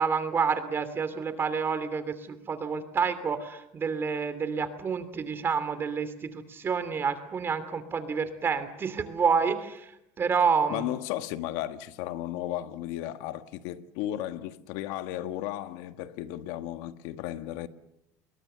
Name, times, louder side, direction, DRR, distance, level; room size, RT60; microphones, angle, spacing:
voice 1, 0.0-9.9 10.2-10.8, right 6 dB, 35° right, 2.8 m, -28 dB
voice 2, 10.7-17.7, left 13 dB, 85° left, 1.5 m, -34 dB
29.5 x 22.5 x 6.9 m
cardioid pair, 110°, 7 cm